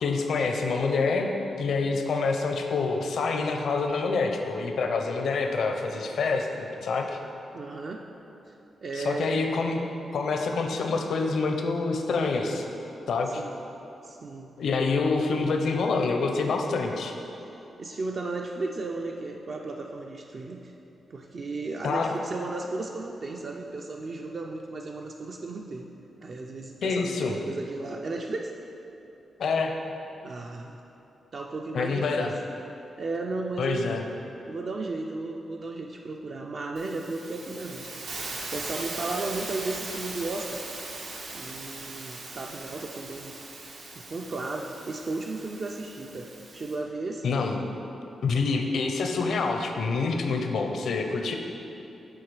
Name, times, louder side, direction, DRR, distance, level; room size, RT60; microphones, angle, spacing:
voice 1, 0.0-7.2 9.0-9.8 10.1-12.6 13.1-13.4 14.6-17.1 21.8-22.1 26.8-27.4 29.4-29.7 31.7-32.3 33.6-34.0 47.2-47.6 48.2-51.4, left 4 dB, 70° left, 4 dB, 0.6 m, -27 dB
voice 2, 7.5-8.0 8.5-8.6 8.8-9.6 13.4-13.6 14.0-14.5 17.8-20.7 21.1-25.9 26.2-28.6 30.2-30.8 31.3-32.3 33.0-33.9 34.5-40.6 41.3-43.4 44.0-47.2, right 3 dB, 45° right, 1 dB, 0.3 m, -35 dB
Hiss, 36.8-46.8, right 2 dB, 85° right, 1.0 m, -39 dB
7.7 x 3.9 x 4.7 m, 3.0 s
wide cardioid pair, 130°, 0 cm